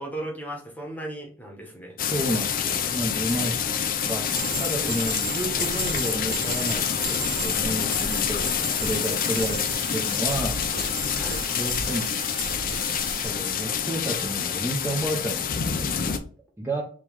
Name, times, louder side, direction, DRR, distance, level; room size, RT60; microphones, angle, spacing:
voice 1, 0.0-2.0 2.7-3.2 11.2-11.4, right 1 dB, 10° left, 0 dB, 1.1 m, -37 dB
sound 1, 2.0-16.2, left 8 dB, 45° left, 0.5 m, -27 dB
voice 2, 2.1-3.5 3.9-10.6 11.5-12.1 12.5-12.7 13.2-16.0 16.6-16.8, right 1 dB, 10° right, -2 dB, 0.7 m, -31 dB
sound 2, 4.3-13.3, right 4 dB, 85° right, 1.9 m, -35 dB
3.7 x 3.1 x 4.6 m, 0.43 s
head